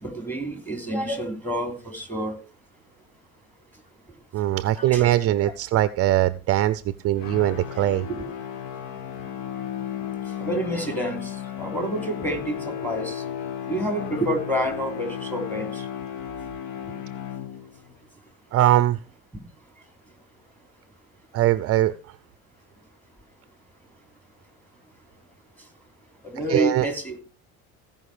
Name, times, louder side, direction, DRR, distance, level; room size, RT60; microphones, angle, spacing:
voice 1, 0.0-2.4 4.7-5.0 8.1-8.3 10.4-13.2 13.7-15.8 26.2-27.2, right 1 dB, 5° left, 5 dB, 3.2 m, -28 dB
voice 2, 4.3-8.1 18.5-19.0 21.3-21.9 26.5-26.9, right 14 dB, 45° right, 15 dB, 0.5 m, -21 dB
sound 1, 7.2-17.9, left 9 dB, 55° left, 1.2 m, -34 dB
16.0 x 5.4 x 4.9 m, 0.35 s
cardioid pair, 120°, 34 cm